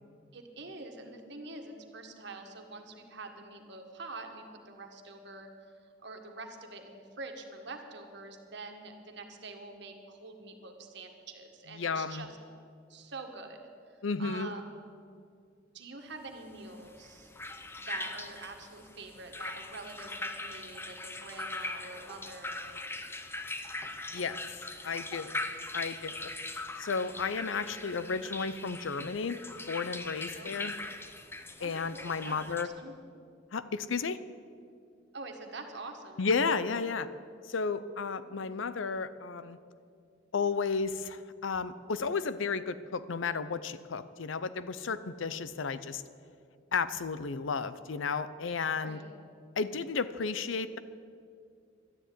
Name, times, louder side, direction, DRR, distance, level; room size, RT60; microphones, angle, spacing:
voice 1, 0.3-5.5 5.8-12.3 12.9-13.6 14.2-14.9 15.7-17.3 17.8-22.8 27.9-28.2 30.3-30.9 31.6-32.9 35.1-36.3 38.3-38.5 48.7-49.2, right 3 dB, 65° right, 4 dB, 1.7 m, -46 dB
voice 2, 11.7-12.2 14.0-14.5 24.1-24.4 24.8-25.4 25.7-26.3 26.8-29.4 29.7-30.7 31.6-32.7 33.5-34.2 36.2-37.1 37.4-39.6 40.3-46.0 46.7-49.0 49.6-50.8, left 5 dB, 85° left, 14 dB, 0.6 m, -33 dB
sound 1, 16.7-32.6, left 2 dB, 10° left, 0.7 m, -41 dB
12.5 x 10.0 x 9.3 m, 2.4 s
head